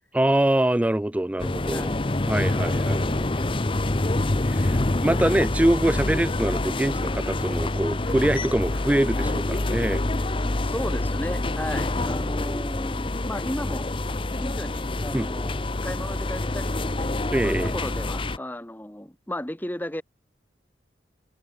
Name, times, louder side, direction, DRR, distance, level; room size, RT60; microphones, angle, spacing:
voice 1, 0.1-1.9 2.3-3.3 4.5-10.0 15.1-15.3 17.3-17.7, right 1 dB, 5° right, 0.3 m, -24 dB
sound 1, 1.4-18.4, left 2 dB, 30° left, 0.8 m, -26 dB
sound 2, 1.7-6.8, left 1 dB, 85° left, 6.2 m, -47 dB
voice 2, 1.7-2.0 10.6-13.9 14.4-17.1 17.4-20.0, left 1 dB, 10° left, 1.4 m, -34 dB
head